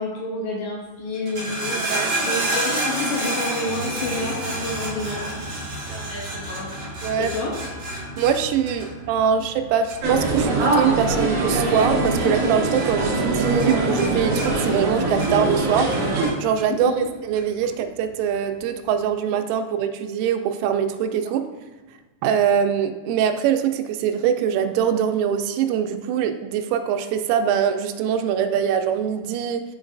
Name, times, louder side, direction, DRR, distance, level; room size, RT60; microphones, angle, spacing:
voice 1, 0.0-6.9 7.2-7.6 8.8-8.9 16.9-17.1, left 2 dB, 80° left, -2 dB, 2.8 m, -30 dB
sound 1, 1.1-12.5 12.8-13.3 13.6-15.6 15.9-16.7 17.3-17.4, right 1 dB, 45° right, 2.1 m, -29 dB
voice 2, 1.8-2.1 7.0-7.3 8.2-15.9 16.4-21.5 22.2-29.6, right 8 dB, 85° right, 6 dB, 3.1 m, -23 dB
sound 2, 10.0-16.3, right 2 dB, 60° right, 2.7 m, -22 dB
11.0 x 3.9 x 2.5 m, 1.3 s
omnidirectional pair, 5.6 m